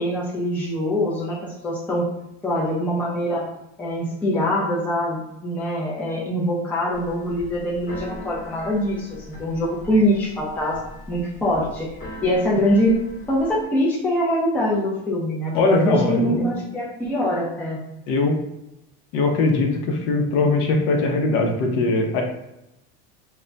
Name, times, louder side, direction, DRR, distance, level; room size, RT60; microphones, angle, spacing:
voice 1, 0.0-2.1 2.4-3.5 3.8-10.8 11.1-11.9 12.2-13.0 13.3-17.8, equal, 5° left, -5 dB, 0.4 m, -23 dB
Keyboard (musical), 6.9-13.6, left 1 dB, 25° left, 0.9 m, -40 dB
voice 2, 15.5-16.5 18.1-18.4 19.1-22.2, left 3 dB, 55° left, 2 dB, 0.7 m, -20 dB
2.2 x 2.2 x 3.8 m, 0.86 s
cardioid pair, 150°, 30 cm